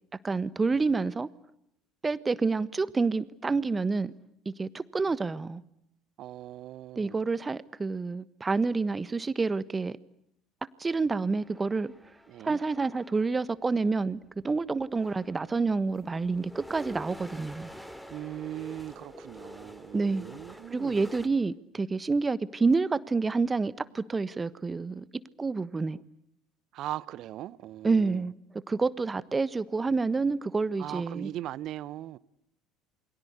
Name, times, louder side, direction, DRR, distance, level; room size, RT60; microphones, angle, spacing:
voice 1, 0.2-1.3 2.0-4.1 4.4-5.6 7.0-10.0 10.8-11.9 12.4-17.7 19.9-20.3 20.7-26.0 27.8-28.3 28.7-31.3, right 4 dB, 20° right, 1.3 m, -28 dB
voice 2, 6.2-7.2 12.3-12.6 18.1-21.0 26.7-28.2 30.8-32.2, right 13 dB, 55° right, 1.0 m, -39 dB
sound 1, 11.2-13.4 14.4-14.5 14.8-21.3, equal, ahead, 2.8 m, -47 dB
28.5 x 24.0 x 8.2 m
hypercardioid pair, 65°, 0 cm